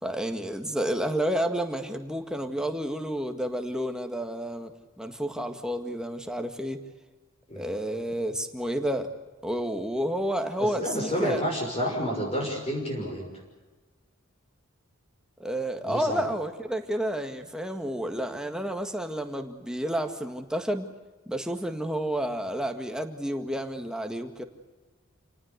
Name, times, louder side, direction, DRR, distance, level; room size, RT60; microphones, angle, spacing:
voice 1, 0.0-4.7 5.0-6.8 7.6-9.1 9.4-11.4 15.4-20.9 21.3-24.4, right 1 dB, 5° right, 5 dB, 1.9 m, -30 dB
voice 2, 10.6-13.3 15.8-16.2, equal, 30° left, 0 dB, 6.0 m, -30 dB
28.5 x 19.0 x 8.1 m, 1.3 s
head